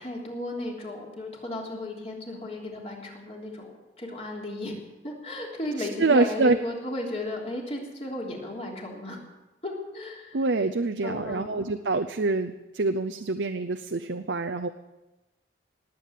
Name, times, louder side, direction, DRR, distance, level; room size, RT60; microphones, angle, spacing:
voice 1, 0.0-9.2 9.6-10.4 11.0-11.7, left 1 dB, 35° left, -1 dB, 3.3 m, -35 dB
voice 2, 5.8-6.6 10.3-14.7, right 3 dB, 85° right, 7 dB, 0.7 m, -26 dB
19.0 x 8.5 x 7.5 m, 1.0 s
head